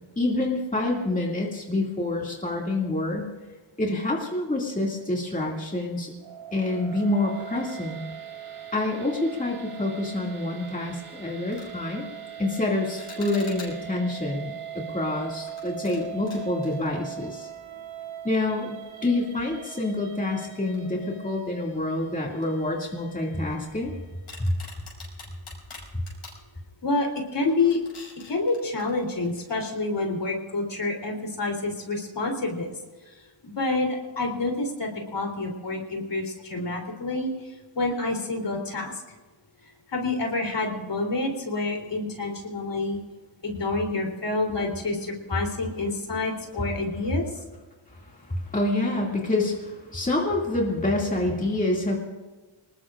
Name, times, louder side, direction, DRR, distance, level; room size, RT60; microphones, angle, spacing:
voice 1, 0.2-3.3 3.8-6.1 6.5-8.0 8.7-12.1 12.4-17.5 18.2-23.9 24.4-24.5 25.9-26.0 48.1-51.9, left 2 dB, 15° left, -2 dB, 2.3 m, -27 dB
sound 1, 6.2-24.4, right 9 dB, 85° right, 2.6 m, -41 dB
sound 2, 11.4-11.8 13.0-14.0 15.3-17.7 18.0-18.1 18.8-18.9 20.7-21.4 21.7-21.8 22.4-23.8 24.3-26.4 27.0-27.2 27.5-29.5, left 3 dB, 80° left, 7.0 m, -47 dB
voice 2, 26.8-27.8 28.3-32.7 33.4-37.3 37.8-38.9 39.9-43.0 43.4-47.3, left 3 dB, 55° left, 2 dB, 3.5 m, -28 dB
25.5 x 20.0 x 2.5 m, 1.2 s
wide cardioid pair, 115°, 49 cm